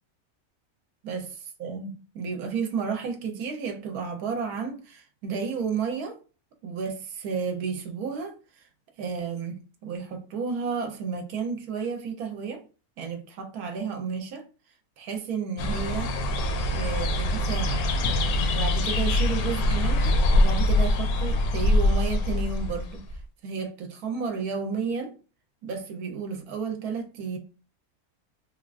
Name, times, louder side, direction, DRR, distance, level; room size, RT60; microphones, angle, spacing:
voice 1, 1.0-1.3 1.6-6.2 6.6-8.6 9.0-12.6 13.0-14.5 15.0-16.2 16.7-17.9 18.5-23.1 23.4-25.2 25.6-27.4, right 5 dB, 80° right, 1.1 m, -32 dB
sound 1, 15.6-23.2, left 1 dB, 80° left, 1.0 m, -24 dB
3.5 x 2.3 x 2.4 m
omnidirectional pair, 1.6 m